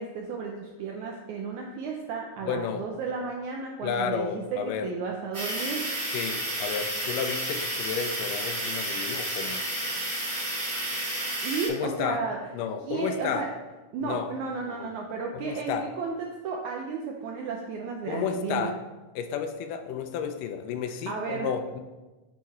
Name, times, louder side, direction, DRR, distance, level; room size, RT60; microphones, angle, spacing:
voice 1, 0.0-6.0 11.4-12.4 12.8-13.5 13.9-18.7 21.1-21.5, right 5 dB, 85° right, 0 dB, 1.6 m, -33 dB
voice 2, 2.4-2.9 3.8-4.9 6.1-9.6 11.7-12.2 12.5-13.5 14.0-14.3 14.7-14.9 15.3-15.9 18.1-18.8 19.2-21.8, left 7 dB, 80° left, 6 dB, 1.9 m, -32 dB
sound 1, 5.3-11.7, right 1 dB, 25° right, 1.4 m, -31 dB
8.4 x 4.7 x 4.5 m, 1.2 s
omnidirectional pair, 4.2 m